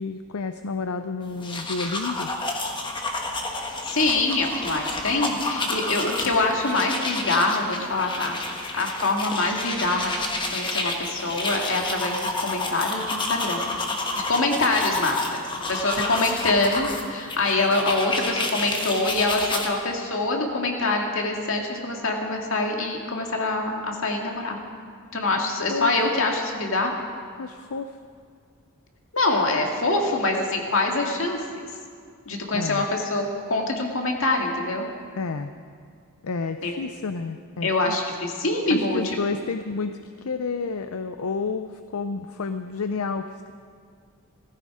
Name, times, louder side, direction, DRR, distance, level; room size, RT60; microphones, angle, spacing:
voice 1, 0.0-2.3 25.7-25.9 27.4-28.0 32.5-32.9 35.2-35.5 36.2-38.0 38.7-43.5, left 4 dB, 80° left, 9 dB, 0.6 m, -30 dB
sound 1, 1.3-19.7, left 2 dB, 20° left, 1.2 m, -30 dB
voice 2, 3.5-8.4 8.7-10.2 10.5-13.7 14.1-15.4 15.7-24.6 25.1-26.9 29.1-31.5 32.3-34.9 36.6-36.7 37.6-39.2, left 2 dB, 65° left, 1 dB, 2.1 m, -25 dB
17.5 x 15.5 x 4.9 m, 2.2 s
head